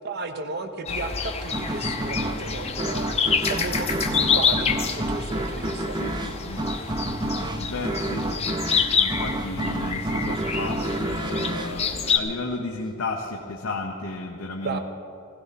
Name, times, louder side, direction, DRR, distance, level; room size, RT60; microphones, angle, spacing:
voice 1, 0.0-6.0 14.6-14.8, right 3 dB, 50° right, 7 dB, 1.0 m, -34 dB
sound 1, 0.9-12.2, left 6 dB, 30° left, 0.8 m, -27 dB
sound 2, 1.5-12.8, right 1 dB, 20° right, 0.6 m, -30 dB
voice 2, 5.9-6.7 7.2-14.8, left 2 dB, 85° left, 1 dB, 0.9 m, -34 dB
16.5 x 16.0 x 4.2 m, 2.7 s
head